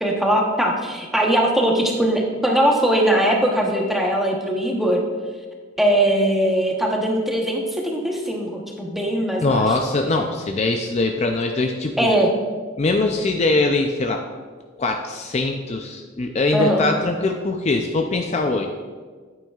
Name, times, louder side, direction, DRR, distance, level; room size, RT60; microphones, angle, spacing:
voice 1, 0.0-5.0 5.8-9.6 12.0-12.3 16.5-16.8, right 1 dB, ahead, 0 dB, 1.0 m, -20 dB
voice 2, 9.4-12.1 12.8-14.2 14.8-18.7, left 3 dB, 35° left, 4 dB, 0.4 m, -22 dB
9.0 x 8.8 x 2.4 m, 1.5 s
head